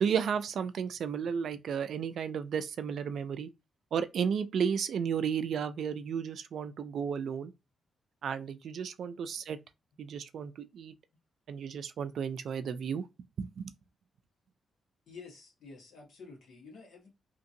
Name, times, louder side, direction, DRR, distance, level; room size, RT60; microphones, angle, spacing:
voice 1, 0.0-3.5 3.9-7.5 8.2-9.6 10.0-10.9 11.5-13.0 13.4-13.7, right 7 dB, 65° right, 0.3 m, -33 dB
voice 2, 15.1-17.1, left 4 dB, 85° left, 1.4 m, -50 dB
2.9 x 2.6 x 2.6 m
wide cardioid pair, 160°, 0 cm